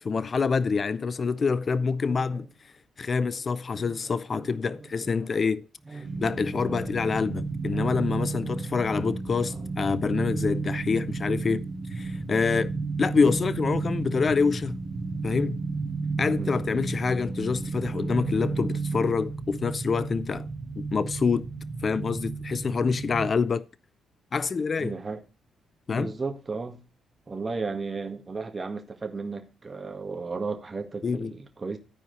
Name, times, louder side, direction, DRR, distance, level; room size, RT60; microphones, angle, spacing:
voice 1, 0.0-2.5 3.0-5.6 5.9-11.6 11.9-12.7 13.0-14.8 15.2-15.6 16.2-20.5 20.8-21.5 21.8-23.7 24.3-25.0 25.9-26.1 31.0-31.3, left 5 dB, 45° left, 0.5 m, -26 dB
voice 2, 2.1-2.5 3.7-5.3 5.9-6.3 6.6-7.3 7.7-8.4 9.5-9.7 10.1-10.2 16.4-16.6 24.8-25.2 25.9-26.8 27.3-31.8, right 4 dB, 35° right, 1.9 m, -36 dB
sound 1, 6.0-23.3, right 4 dB, 60° right, 2.4 m, -32 dB
13.0 x 4.7 x 5.5 m
hypercardioid pair, 50°, 0 cm